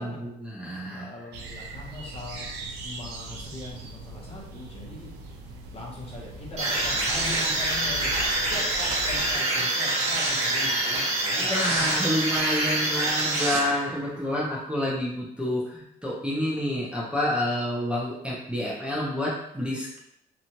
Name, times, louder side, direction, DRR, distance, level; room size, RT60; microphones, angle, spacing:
voice 1, 0.0-1.1 11.4-20.0, left 1 dB, 5° right, -5 dB, 0.6 m, -28 dB
voice 2, 0.9-2.5 2.8-5.1 5.7-8.1 8.5-12.0, left 2 dB, 35° left, -3 dB, 0.8 m, -40 dB
sound 1, 1.3-9.4, right 1 dB, 75° right, 0.5 m, -40 dB
sound 2, 6.6-14.1, right 2 dB, 40° right, 1.0 m, -26 dB
2.9 x 2.3 x 2.8 m, 0.76 s
cardioid pair, 110°, 17 cm